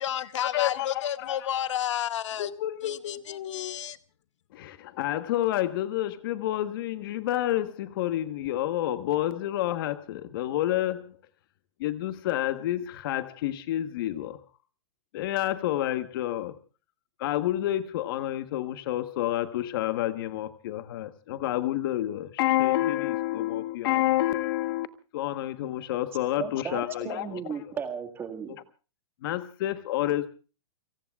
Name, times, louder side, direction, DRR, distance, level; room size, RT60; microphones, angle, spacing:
voice 1, 0.0-2.5 2.8-4.0, left 11 dB, 70° left, 0.9 m, -31 dB
voice 2, 0.5-1.4 2.4-3.8 4.5-11.2 11.8-14.4 15.1-16.6 17.2-24.9 25.1-27.4 29.2-30.3, left 14 dB, 45° left, 1.3 m, -29 dB
voice 3, 26.4-28.6, right 7 dB, 15° right, 1.9 m, -35 dB
30.0 x 18.5 x 2.4 m
hypercardioid pair, 165°, 16 cm